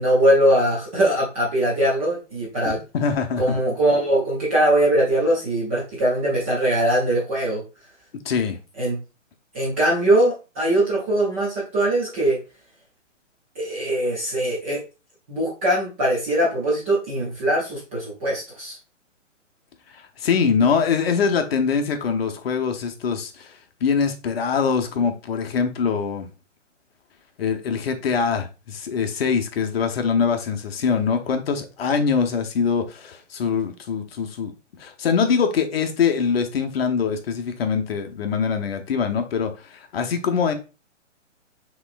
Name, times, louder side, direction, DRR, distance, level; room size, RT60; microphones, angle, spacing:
voice 1, 0.0-2.8 3.4-7.6 8.8-9.0 9.5-12.4 13.6-14.8 15.3-18.7, right 1 dB, 10° right, 0.4 m, -21 dB
voice 2, 2.6-3.6 8.2-8.6 19.9-26.3 27.4-34.5 34.8-40.5, left 6 dB, 50° left, 0.9 m, -23 dB
6.0 x 3.0 x 2.5 m
hypercardioid pair, 145°, 38 cm